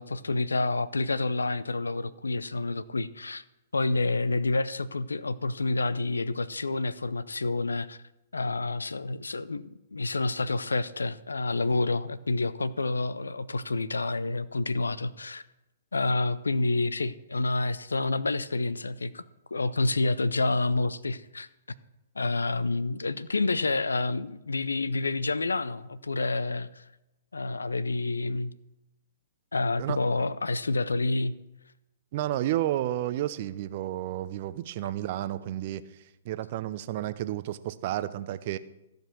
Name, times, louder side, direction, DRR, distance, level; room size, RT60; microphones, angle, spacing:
voice 1, 0.0-3.4 3.7-8.0 8.3-15.4 15.9-19.2 19.5-21.5 22.2-26.8 27.3-28.5 29.5-31.3, left 3 dB, 80° left, 17 dB, 0.5 m, -28 dB
voice 2, 32.1-35.8 36.2-38.6, right 13 dB, 45° right, 14 dB, 0.6 m, -31 dB
14.0 x 5.2 x 6.1 m, 0.95 s
figure-of-eight pair, 120°, 0 cm